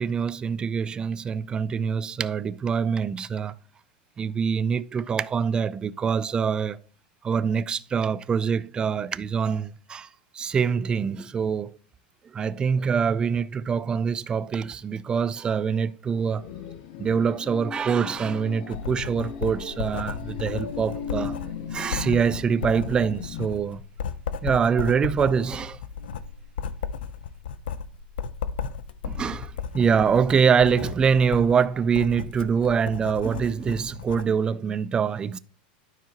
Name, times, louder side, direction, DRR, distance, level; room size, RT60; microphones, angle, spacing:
voice 1, 0.0-3.5 4.2-6.8 7.2-10.1 10.3-11.8 12.3-16.5 17.0-21.4 21.7-23.8 24.4-25.8 29.0-35.4, right 6 dB, 15° right, 0.3 m, -24 dB
sound 1, 16.1-23.5, left 8 dB, 65° left, 0.8 m, -38 dB
Writing, 18.7-34.3, left 7 dB, 90° left, 0.6 m, -35 dB
12.0 x 4.5 x 2.9 m
supercardioid pair, 140°, 5 cm